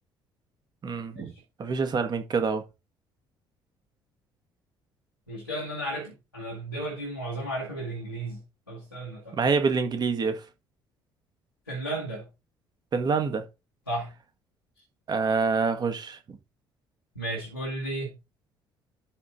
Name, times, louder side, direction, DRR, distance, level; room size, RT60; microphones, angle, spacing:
voice 1, 0.8-1.3 1.6-2.6 9.3-10.4 12.9-13.4 15.1-16.4, right 5 dB, 35° right, 1.8 m, -26 dB
voice 2, 5.3-9.4 11.7-12.3 13.9-14.1 17.2-18.2, right 1 dB, 90° left, 2.0 m, -34 dB
12.0 x 4.1 x 3.9 m
figure-of-eight pair, 50°, 11 cm